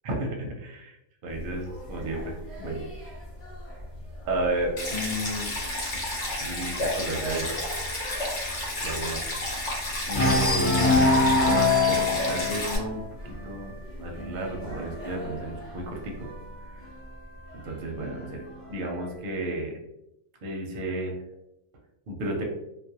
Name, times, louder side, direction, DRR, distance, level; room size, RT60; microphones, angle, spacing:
voice 1, 0.0-1.0 1.2-2.9 4.3-5.5 5.9-6.1 6.4-7.6 8.8-9.2 10.1-10.7 11.5-16.3 16.7-16.8 17.6-18.4 18.7-19.7 20.4-21.1 22.1-22.4, right 1 dB, 55° right, 0 dB, 0.7 m, -33 dB
sound 1, 1.3-4.9 5.4-5.7 5.9-6.0 6.4-9.7 10.1-16.6 17.5-18.5, left 2 dB, 15° left, 0.5 m, -27 dB
Stream, 4.8-12.8, left 1 dB, 70° left, 1.0 m, -31 dB
2.4 x 2.1 x 2.7 m, 0.84 s
omnidirectional pair, 1.3 m